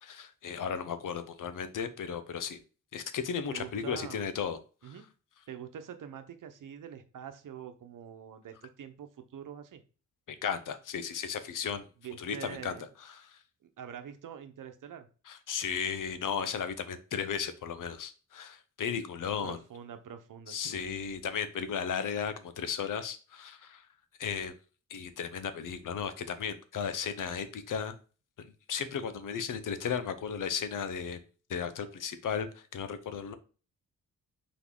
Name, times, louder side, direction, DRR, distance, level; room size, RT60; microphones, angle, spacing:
voice 1, 0.0-2.6 2.9-4.6 4.8-4.9 10.3-11.9 12.2-12.7 13.1-13.4 15.3-19.6 20.5-23.8 24.2-24.5 24.9-28.0 28.4-31.2 31.5-33.3, left 7 dB, 75° left, 11 dB, 0.9 m, -35 dB
voice 2, 3.5-4.3 4.8-5.1 5.5-9.8 12.0-12.8 13.6-15.1 19.4-21.1, right 8 dB, 75° right, 8 dB, 1.0 m, -45 dB
6.0 x 4.0 x 3.9 m, 0.35 s
wide cardioid pair, 155°, 32 cm